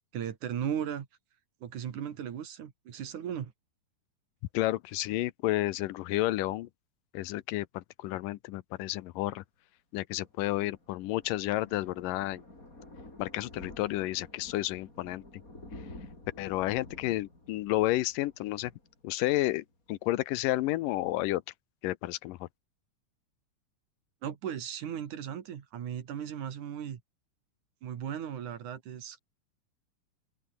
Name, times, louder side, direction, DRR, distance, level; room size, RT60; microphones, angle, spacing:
voice 1, 0.1-1.1 1.6-3.5 24.2-27.0 27.8-29.2, right 9 dB, 65° right, 3.3 m, -36 dB
voice 2, 4.5-6.7 7.1-9.4 9.9-12.4 13.2-15.2 16.4-18.7 19.0-21.4 21.8-22.5, left 17 dB, 85° left, 2.4 m, -31 dB
Thunder, 10.2-19.6 19.9-20.2 20.5-20.6 20.8-20.9, left 2 dB, 25° left, 7.2 m, -50 dB
open air
omnidirectional pair, 3.8 m